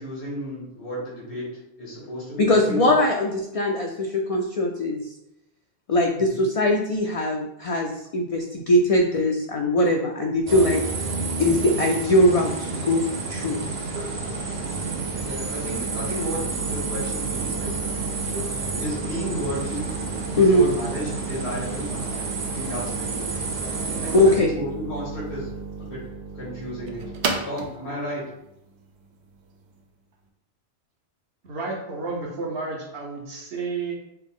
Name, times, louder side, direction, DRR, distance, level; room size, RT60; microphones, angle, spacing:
voice 1, 0.0-1.4 1.8-2.9 6.3-6.4 15.2-17.8 18.5-19.9 20.3-22.2 22.5-23.7 24.0-25.5 25.8-26.0 26.3-27.0 27.5-28.2, equal, 90° left, -6 dB, 1.6 m, -33 dB
voice 2, 2.4-5.0 5.9-10.8 11.4-13.0 13.3-13.6 20.4-20.7 24.1-24.5, left 1 dB, 55° left, 1 dB, 0.4 m, -21 dB
sound 1, 10.5-24.4, right 4 dB, 50° right, 0.7 m, -30 dB
sound 2, 12.2-29.8, right 4 dB, 90° right, 0.9 m, -35 dB
voice 3, 31.4-33.9, right 4 dB, 65° right, -2 dB, 1.0 m, -31 dB
5.5 x 2.0 x 3.6 m, 0.84 s
omnidirectional pair, 1.1 m